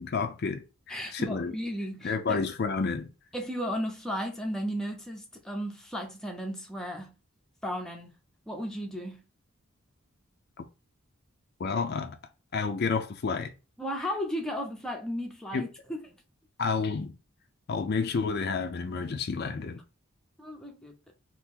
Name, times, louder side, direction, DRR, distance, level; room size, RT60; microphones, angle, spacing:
voice 1, 0.0-1.5 2.0-3.1 11.6-12.2 12.5-13.5 15.5-15.7 16.6-17.2 17.7-19.8, left 4 dB, 50° left, 0.4 m, -30 dB
voice 2, 0.9-2.5 3.3-7.1 7.6-8.2 8.5-9.2 13.8-16.1 20.4-21.1, equal, 5° left, 0.6 m, -35 dB
2.8 x 2.5 x 3.5 m
head